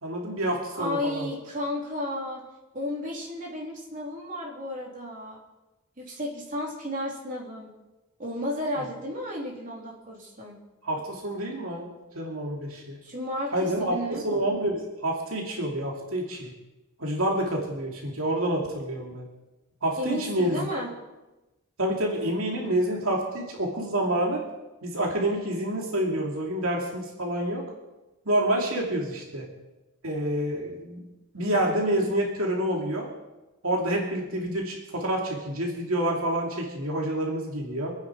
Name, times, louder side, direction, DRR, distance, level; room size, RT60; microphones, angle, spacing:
voice 1, 0.0-1.3 8.7-8.8 10.8-13.0 13.5-16.5 17.0-19.3 19.8-20.7 21.8-24.4 24.8-27.7 28.3-29.5 30.0-31.0 31.3-33.1 33.6-37.9, right 1 dB, 80° right, -1 dB, 2.7 m, -28 dB
voice 2, 0.7-2.4 2.7-5.4 6.0-7.7 8.2-10.6 13.0-14.3 20.0-20.9 28.5-28.8, left 1 dB, 40° right, -3 dB, 3.6 m, -33 dB
26.0 x 9.7 x 4.7 m, 1.1 s
head